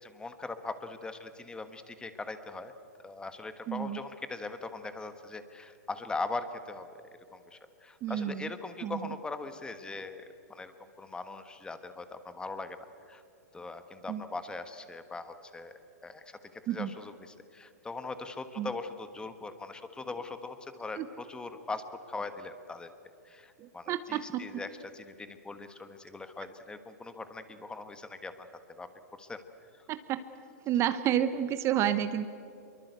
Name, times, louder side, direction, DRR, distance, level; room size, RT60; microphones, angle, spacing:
voice 1, 0.0-2.7 3.0-7.0 7.3-10.2 10.5-13.2 13.5-15.7 16.0-16.4 16.7-22.9 23.2-28.5 28.8-28.9 29.2-29.4 29.7-29.8, left 3 dB, 10° left, 10 dB, 1.5 m, -40 dB
voice 2, 3.7-4.0 8.0-8.5 8.8-9.0 14.1-14.2 16.7-16.9 18.6-18.7 21.0-21.1 23.6-24.6 29.9-30.2 30.7-32.3, right 10 dB, 30° right, 12 dB, 0.9 m, -30 dB
25.0 x 23.0 x 8.2 m, 2.6 s
hypercardioid pair, 130°, 9 cm